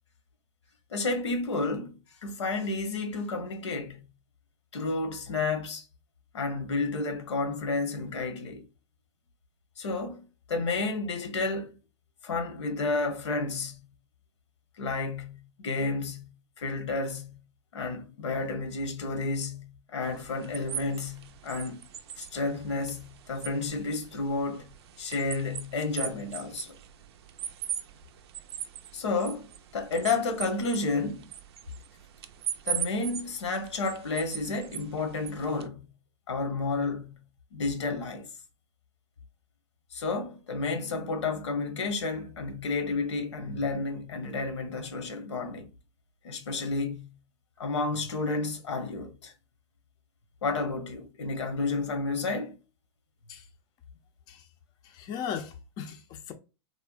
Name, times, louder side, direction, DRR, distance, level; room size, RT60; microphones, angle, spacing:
voice 1, 0.9-1.9 2.2-4.1 4.7-5.8 6.3-8.6 9.8-10.2 10.5-11.7 12.2-13.8 14.8-16.3 16.6-17.4 17.7-21.8 22.2-24.7 25.0-26.7 28.9-31.3 32.6-35.9 36.3-37.2 37.5-38.3 39.9-45.7 46.2-47.1 47.6-49.3 50.4-52.6, left 3 dB, 85° left, 0.9 m, -31 dB
sound 1, 20.0-35.7, right 9 dB, 65° right, 0.4 m, -40 dB
voice 2, 54.8-56.3, left 8 dB, 30° left, 0.4 m, -37 dB
3.3 x 2.1 x 2.3 m
hypercardioid pair, 135°, 14 cm